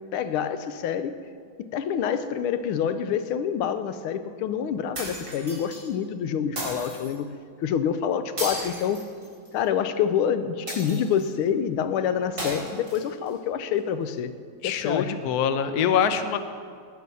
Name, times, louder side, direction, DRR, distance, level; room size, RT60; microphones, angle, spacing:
voice 1, 0.1-1.1 1.7-7.3 7.6-9.0 9.5-14.3 14.6-15.2, left 8 dB, 90° left, 11 dB, 1.6 m, -27 dB
sound 1, 4.9-5.8 6.6-7.1 8.4-9.6 10.7-11.3 12.4-13.3, right 1 dB, 40° right, 4.4 m, -35 dB
voice 2, 14.6-16.4, left 7 dB, 60° left, 9 dB, 1.1 m, -24 dB
18.5 x 7.7 x 5.5 m, 2.1 s
omnidirectional pair, 2.3 m